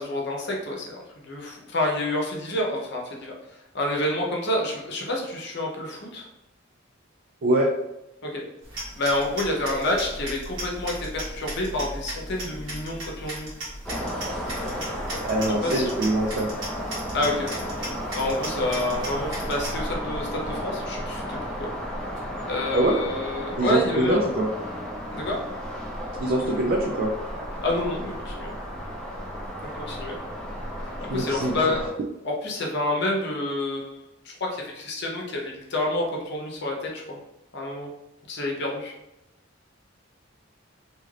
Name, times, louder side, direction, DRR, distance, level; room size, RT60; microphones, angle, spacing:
voice 1, 0.0-6.3 8.2-8.4 9.0-13.5 15.6-15.8 17.1-17.5 18.1-21.7 22.5-24.3 25.1-25.4 27.6-28.5 29.6-30.2 31.1-31.9 32.2-37.2 37.5-37.9 38.3-38.9, left 1 dB, 60° left, -1 dB, 0.8 m, -28 dB
sound 1, 8.6-19.8, right 1 dB, 75° right, 1.3 m, -37 dB
sound 2, 13.8-31.9, equal, 5° left, 0.6 m, -33 dB
voice 2, 15.2-16.5 22.7-23.0 23.6-24.5 26.2-27.1 31.1-31.5, right 1 dB, 50° right, 0 dB, 0.4 m, -23 dB
2.8 x 2.5 x 3.2 m, 0.89 s
head